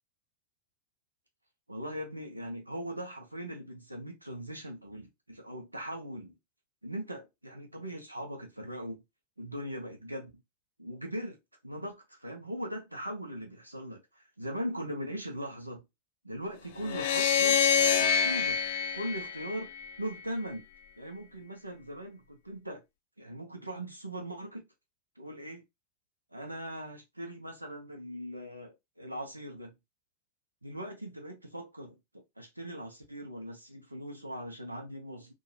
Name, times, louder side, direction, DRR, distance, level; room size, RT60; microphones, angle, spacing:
voice 1, 1.7-6.3 6.8-9.0 9.4-10.4 10.8-11.4 11.6-15.8 16.2-17.7 18.0-18.6 18.9-19.7 20.0-20.6 21.0-22.8 23.2-24.6 25.2-25.6 26.3-29.7 30.6-35.3, equal, 85° right, 0.6 m, -40 dB
sound 1, 16.8-20.1, left 7 dB, 55° left, 0.4 m, -26 dB
2.6 x 2.1 x 2.6 m
figure-of-eight pair, 90°, 0 cm